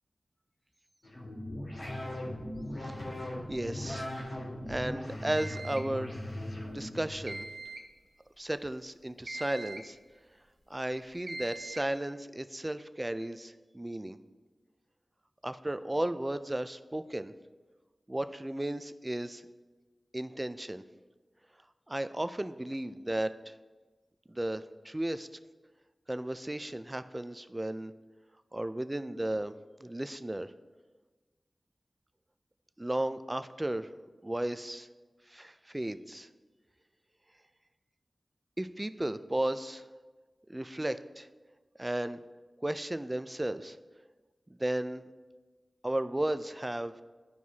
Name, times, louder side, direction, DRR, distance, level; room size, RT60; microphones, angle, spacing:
sound 1, 1.0-7.4, left 1 dB, 85° left, 2.3 m, -39 dB
voice 1, 3.5-4.1 4.7-6.1 6.6-7.5 8.4-10.0 10.7-14.2 15.4-17.3 18.1-19.4 20.1-20.8 21.9-23.5 24.3-25.3 26.1-27.9 28.5-29.5 29.8-30.5 32.8-33.9 34.2-34.9 35.3-36.3 38.6-39.8 40.5-41.3 41.8-42.2 42.6-43.8 44.5-45.1 45.8-46.9, right 1 dB, 25° right, 12 dB, 0.4 m, -34 dB
sound 2, 5.4-6.0 7.3-7.9 9.3-10.0 11.3-11.9, right 2 dB, 45° right, 0.8 m, -42 dB
11.5 x 4.6 x 2.8 m, 1.3 s
cardioid pair, 40°, 0 cm